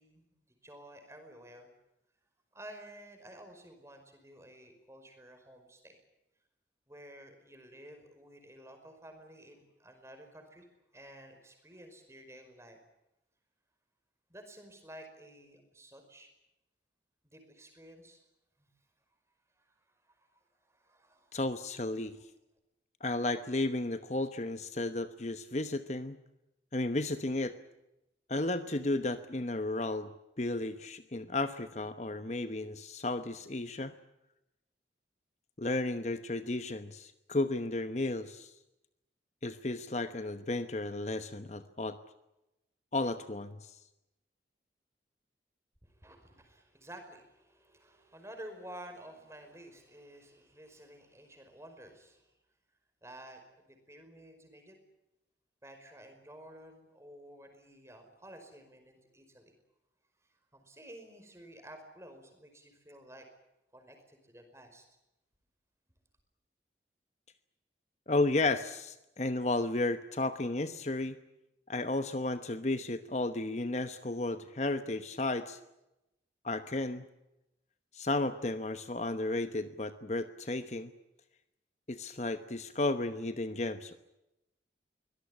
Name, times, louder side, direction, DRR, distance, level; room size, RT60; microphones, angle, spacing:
voice 1, 0.0-1.7 2.5-6.0 6.9-10.7 10.9-12.8 14.3-16.3 17.2-18.2 18.6-18.7 19.6-21.4 45.8-52.4 53.0-54.8 55.6-59.5 60.3-63.3 63.7-64.8, right 1 dB, 15° right, 5 dB, 5.2 m, -52 dB
voice 2, 21.3-22.2 23.0-26.2 26.7-27.6 28.3-30.1 30.4-33.9 35.6-38.5 39.4-42.0 42.9-43.8 68.1-71.2 71.7-75.6 76.4-77.1 77.9-80.9 81.9-84.0, left 2 dB, 40° left, 10 dB, 1.0 m, -33 dB
24.0 x 18.5 x 9.9 m, 0.91 s
head